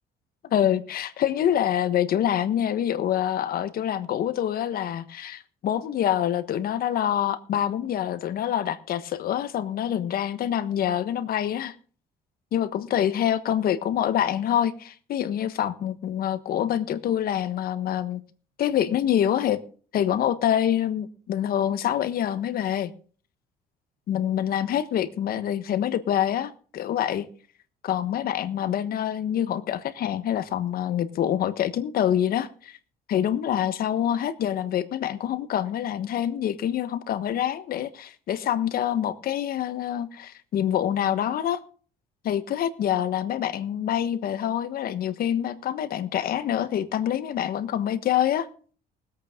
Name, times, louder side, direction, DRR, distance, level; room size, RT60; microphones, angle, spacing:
voice 1, 0.5-11.7 12.5-18.2 18.6-19.6 19.9-22.9 24.1-27.2 27.8-32.8 33.1-41.6 42.2-48.5, left 10 dB, 60° left, 13 dB, 1.3 m, -26 dB
20.0 x 8.4 x 3.7 m, 0.41 s
cardioid pair, 110°, 17 cm